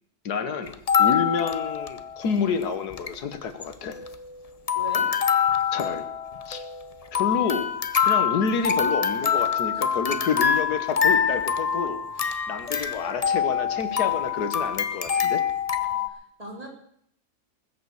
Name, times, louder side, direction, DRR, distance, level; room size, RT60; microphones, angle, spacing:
voice 1, 0.2-4.0 5.7-6.0 6.5-6.6 7.1-7.7 8.0-15.4, left 6 dB, 85° left, 9 dB, 1.7 m, -29 dB
sound 1, 0.7-2.3 2.6-2.7 2.9-3.1 3.6-4.4 4.7-16.1, left 7 dB, 40° left, 0.5 m, -25 dB
voice 2, 4.8-5.1 9.7-10.0 15.8-16.0 16.4-16.7, right 1 dB, 25° right, -2 dB, 3.9 m, -39 dB
20.0 x 6.8 x 7.0 m, 0.69 s
omnidirectional pair, 1.6 m